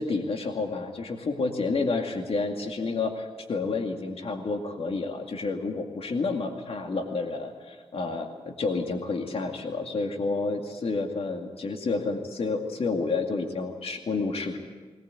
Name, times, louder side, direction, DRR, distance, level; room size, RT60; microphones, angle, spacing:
voice 1, 0.0-14.6, left 3 dB, 65° left, 4 dB, 2.2 m, -30 dB
20.5 x 19.5 x 8.4 m, 1.4 s
cardioid pair, 80°, 11 cm